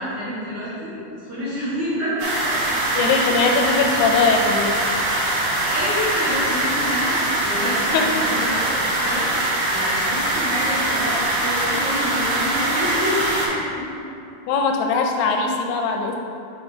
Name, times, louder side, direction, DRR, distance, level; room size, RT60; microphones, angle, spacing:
voice 1, 0.0-2.6 2.9-4.2 5.6-9.3 9.6-13.8 15.2-15.3, equal, 50° right, -12 dB, 1.7 m, -28 dB
sound 1, 2.2-13.5, right 1 dB, 70° right, 3.7 m, -22 dB
voice 2, 3.0-4.8 7.9-8.2 14.5-16.2, left 4 dB, 85° left, 3 dB, 2.5 m, -20 dB
9.6 x 3.6 x 4.7 m, 2.6 s
omnidirectional pair, 5.1 m